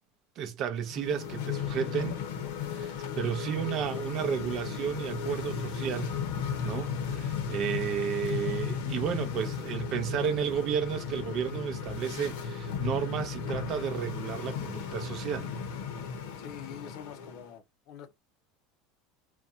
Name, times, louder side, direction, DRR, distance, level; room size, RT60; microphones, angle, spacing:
voice 1, 0.4-2.2 2.7-6.1 6.6-15.5, right 8 dB, 45° right, 0.5 m, -32 dB
sound 1, 0.9-17.5, left 7 dB, 80° left, 0.8 m, -35 dB
voice 2, 16.4-18.1, left 8 dB, 50° left, 0.5 m, -45 dB
2.6 x 2.2 x 2.6 m
supercardioid pair, 135°, 0 cm